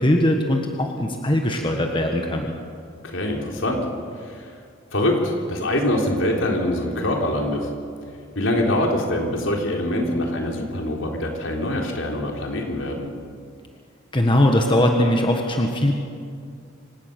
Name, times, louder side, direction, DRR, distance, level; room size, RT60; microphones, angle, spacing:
voice 1, 0.0-2.5 14.1-15.9, left 1 dB, 25° left, 2 dB, 1.6 m, -20 dB
voice 2, 3.0-3.9 4.2-4.5 4.9-7.7 8.4-13.1, left 1 dB, 70° left, 1 dB, 3.8 m, -24 dB
26.5 x 17.0 x 6.9 m, 2.3 s
head